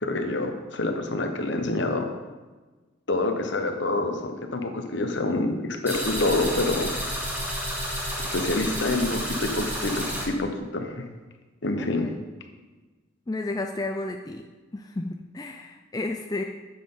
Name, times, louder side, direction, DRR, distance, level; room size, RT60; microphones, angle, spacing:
voice 1, 0.0-2.1 3.1-6.9 8.3-11.0 11.6-12.1, left 2 dB, 60° left, 5 dB, 1.1 m, -27 dB
sound 1, 5.9-10.2, equal, 10° right, 1.8 m, -30 dB
voice 2, 11.8-12.3 13.3-14.4 14.7-16.4, left 2 dB, 20° left, 4 dB, 0.3 m, -32 dB
9.7 x 7.5 x 3.8 m, 1.3 s
head